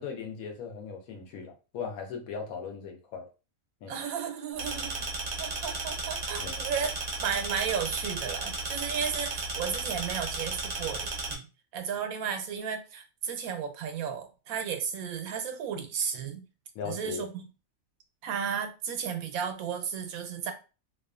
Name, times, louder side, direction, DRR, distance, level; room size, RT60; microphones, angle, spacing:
voice 1, 0.0-3.3 3.8-4.0 6.4-6.5 16.7-17.2, left 6 dB, 85° left, 1.0 m, -38 dB
voice 2, 3.9-5.1 5.4-6.9 7.2-11.4 11.7-16.4 16.8-17.5 18.2-20.5, right 7 dB, 90° right, 1.0 m, -34 dB
sound 1, 4.6-11.3, right 3 dB, 55° right, 0.4 m, -34 dB
2.5 x 2.3 x 2.3 m
omnidirectional pair, 1.5 m